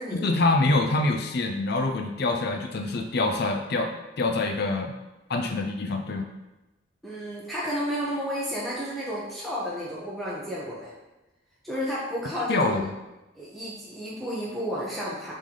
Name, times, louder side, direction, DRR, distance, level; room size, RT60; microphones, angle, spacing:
voice 1, 0.1-4.9 5.3-6.3 12.5-12.9, left 2 dB, 60° left, 5 dB, 0.6 m, -25 dB
voice 2, 7.0-10.9 11.6-12.8 13.4-15.3, equal, ahead, -8 dB, 1.0 m, -32 dB
7.4 x 3.4 x 3.8 m, 1.0 s
head